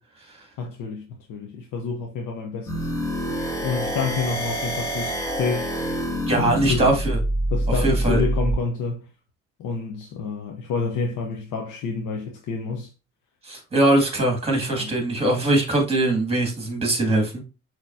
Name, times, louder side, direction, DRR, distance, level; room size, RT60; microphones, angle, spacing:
voice 1, 0.6-2.9 3.6-5.7 6.4-7.0 7.5-9.1 9.6-12.9 14.7-14.9, left 4 dB, 85° left, 0.8 m, -28 dB
sound 1, 2.7-8.6, right 1 dB, 10° left, 1.3 m, -26 dB
voice 2, 6.3-7.2 7.8-8.2 13.4-17.3, right 2 dB, 20° right, 2.0 m, -21 dB
6.1 x 3.0 x 2.6 m
cardioid pair, 90°, 30 cm